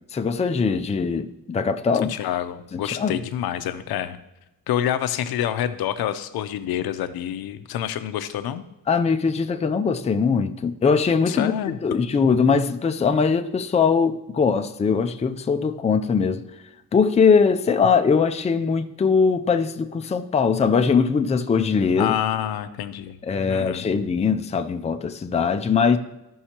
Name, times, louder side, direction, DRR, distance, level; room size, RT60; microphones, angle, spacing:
voice 1, 0.1-2.1 2.7-3.2 8.9-16.4 16.9-22.1 23.2-26.0, left 5 dB, 20° left, 7 dB, 0.4 m, -21 dB
voice 2, 2.1-4.2 4.7-8.7 11.3-11.8 22.0-23.2 23.5-23.9, left 11 dB, 85° left, 10 dB, 0.7 m, -27 dB
14.5 x 5.5 x 2.9 m, 0.96 s
cardioid pair, 125°, 36 cm